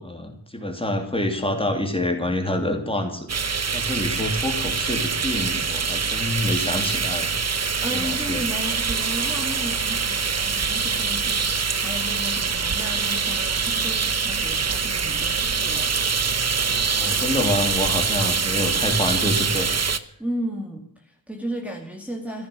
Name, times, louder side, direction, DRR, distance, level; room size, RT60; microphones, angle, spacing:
voice 1, 0.0-3.3 3.7-8.4 16.9-19.8, left 1 dB, 10° left, 4 dB, 3.0 m, -27 dB
sound 1, 3.3-20.0, right 5 dB, 35° right, 0.9 m, -24 dB
voice 2, 7.8-15.9 20.2-22.5, equal, 5° right, -1 dB, 2.4 m, -34 dB
14.5 x 11.0 x 7.5 m, 0.65 s
wide cardioid pair, 130°, 44 cm